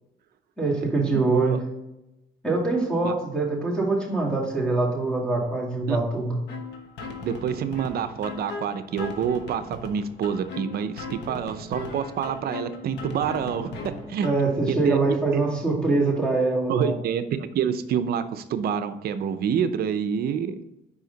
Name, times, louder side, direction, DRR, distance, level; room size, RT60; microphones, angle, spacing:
voice 1, 0.6-1.6 2.4-6.4 14.2-17.0, right 3 dB, 5° left, -3 dB, 2.3 m, -24 dB
voice 2, 1.1-1.6 3.0-3.1 5.9-6.0 7.2-14.3 14.7-15.0 15.3-15.4 16.7-20.6, right 8 dB, 60° right, 11 dB, 0.6 m, -27 dB
sound 1, 6.5-14.5, left 3 dB, 75° left, 1.1 m, -38 dB
5.1 x 4.8 x 4.0 m, 0.92 s
cardioid pair, 105°, 18 cm